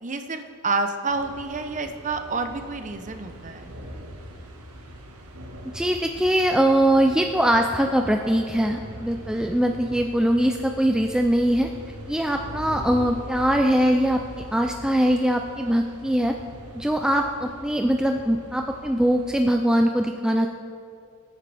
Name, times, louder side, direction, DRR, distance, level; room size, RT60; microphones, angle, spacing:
voice 1, 0.0-3.7, right 3 dB, 35° right, 7 dB, 0.8 m, -29 dB
sound 1, 1.1-19.4, equal, 85° right, 1.6 m, -42 dB
voice 2, 5.6-11.7 12.1-16.3 16.7-20.5, right 1 dB, 5° right, 3 dB, 0.3 m, -22 dB
22.5 x 9.2 x 3.4 m, 2.4 s
head